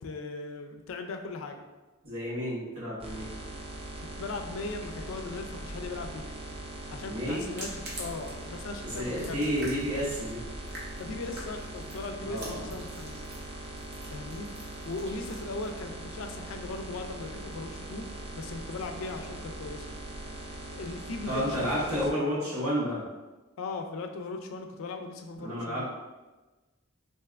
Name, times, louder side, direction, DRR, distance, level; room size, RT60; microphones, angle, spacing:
voice 1, 0.0-1.6 4.2-6.3 6.9-9.5 11.0-13.2 14.1-14.5 14.8-18.1 18.4-19.9 20.7-21.7 22.1-22.3 23.6-25.9, left 3 dB, 65° left, 5 dB, 0.4 m, -38 dB
voice 2, 2.0-3.2 7.1-7.4 9.0-10.4 12.2-12.7 21.3-23.0 25.3-25.9, equal, 80° right, -7 dB, 1.2 m, -31 dB
sound 1, 3.0-22.1, right 1 dB, 25° right, 0.4 m, -41 dB
sound 2, 7.4-18.1, right 1 dB, 50° right, 0.7 m, -47 dB
3.3 x 2.7 x 2.4 m, 1.2 s
head